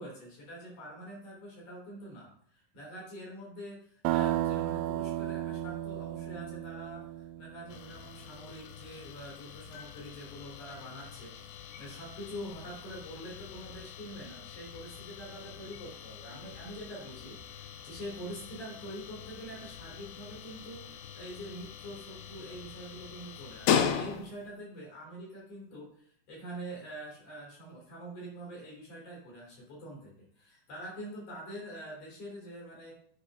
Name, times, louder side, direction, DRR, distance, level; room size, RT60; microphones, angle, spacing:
voice 1, 0.0-30.1 30.4-32.9, right 1 dB, 50° left, -3 dB, 4.8 m, -45 dB
sound 1, 4.1-7.8, right 13 dB, 85° right, 2.6 m, -33 dB
sound 2, 7.7-24.6, left 8 dB, 85° left, 2.7 m, -39 dB
10.0 x 5.6 x 4.2 m, 0.64 s
omnidirectional pair, 4.6 m